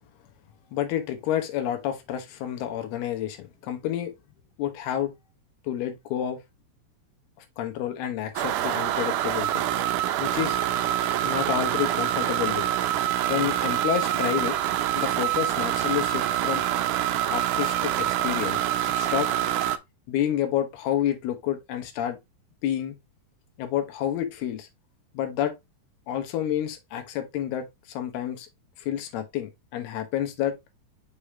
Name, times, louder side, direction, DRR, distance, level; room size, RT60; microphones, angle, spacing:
voice 1, 0.7-4.1 4.6-5.1 5.6-6.4 7.6-9.6 10.2-10.6 11.2-12.7 13.3-14.6 15.0-16.6 17.3-19.3 20.1-22.2 22.6-23.0 23.6-24.7 25.1-25.5 26.1-28.5 28.8-30.6, left 11 dB, 90° left, 3.0 m, -29 dB
sound 1, 8.4-19.8, right 12 dB, 90° right, 1.7 m, -26 dB
6.2 x 5.0 x 3.2 m
omnidirectional pair, 4.4 m